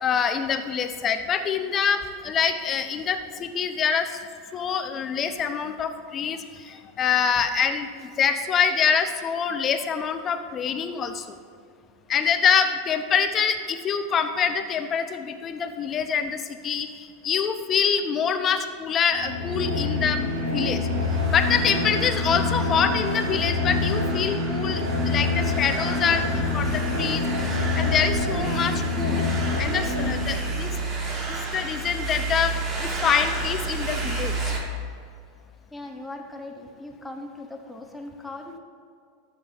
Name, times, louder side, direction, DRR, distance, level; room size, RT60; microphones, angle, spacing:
voice 1, 0.0-4.2 4.5-7.9 8.2-11.3 12.1-20.8 21.3-29.2 29.6-30.7 31.3-32.5 32.8-34.5, left 7 dB, 30° left, 8 dB, 0.8 m, -25 dB
sound 1, 19.0-30.7, left 3 dB, 90° right, 2.6 m, -26 dB
sound 2, 20.9-34.6, right 3 dB, 35° right, 2.0 m, -32 dB
voice 2, 35.7-38.6, left 2 dB, 5° left, 1 dB, 1.4 m, -39 dB
13.0 x 7.6 x 3.0 m, 2.3 s
hypercardioid pair, 100°, 0 cm